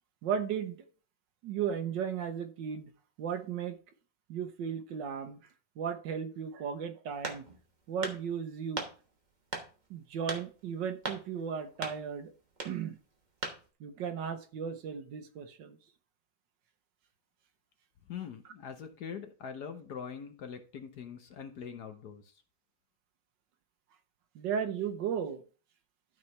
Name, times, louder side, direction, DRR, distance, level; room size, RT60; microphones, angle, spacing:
voice 1, 0.2-0.8 1.4-2.9 3.2-3.8 4.3-5.4 5.8-7.4 7.9-8.8 9.9-12.3 12.6-13.0 13.8-15.8 24.3-25.4, right 7 dB, 70° right, 1.4 m, -35 dB
sound 1, 7.2-7.7 8.0-8.2 8.8-8.9 9.5-9.7 10.3-10.4 11.0-11.2 11.8-12.0 12.6-12.7 13.4-13.6, right 3 dB, 30° right, 1.1 m, -36 dB
voice 2, 18.1-22.2, left 7 dB, 60° left, 1.3 m, -43 dB
12.5 x 4.3 x 3.3 m
omnidirectional pair, 2.1 m